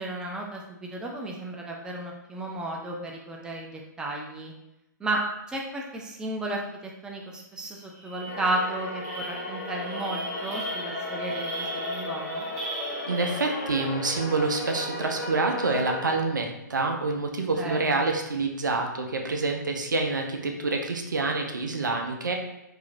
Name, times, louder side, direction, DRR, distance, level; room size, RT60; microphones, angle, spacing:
voice 1, 0.0-4.5 5.0-12.4 17.5-18.0, right 1 dB, 5° right, -1 dB, 0.4 m, -33 dB
sound 1, 7.3-7.4 7.7-14.1, right 2 dB, 40° right, 1.3 m, -39 dB
sound 2, 8.3-16.2, left 2 dB, 45° left, 0.8 m, -35 dB
voice 2, 13.1-22.3, right 3 dB, 75° right, 3 dB, 0.6 m, -27 dB
3.8 x 2.8 x 2.6 m, 0.89 s
figure-of-eight pair, 115°, 10 cm